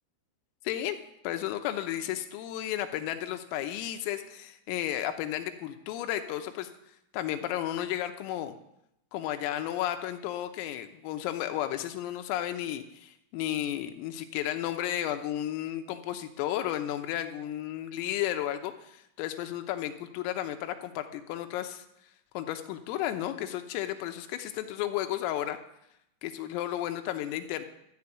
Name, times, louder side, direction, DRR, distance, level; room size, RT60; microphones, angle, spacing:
voice 1, 0.7-1.0 1.3-6.7 7.1-8.6 9.1-21.9 22.4-25.6 26.2-27.6, left 12 dB, 85° left, 7 dB, 3.6 m, -33 dB
13.5 x 7.7 x 8.4 m, 0.80 s
omnidirectional pair, 6.0 m